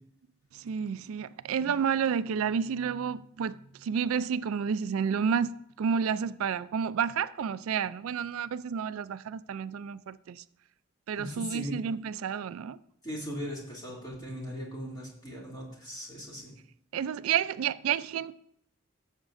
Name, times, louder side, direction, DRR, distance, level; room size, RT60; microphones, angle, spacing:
voice 1, 0.5-10.4 11.1-12.8 16.9-18.3, right 7 dB, 85° right, 0.4 m, -30 dB
voice 2, 11.2-11.7 13.0-16.5, equal, 20° left, 2.7 m, -39 dB
15.5 x 7.3 x 2.6 m
head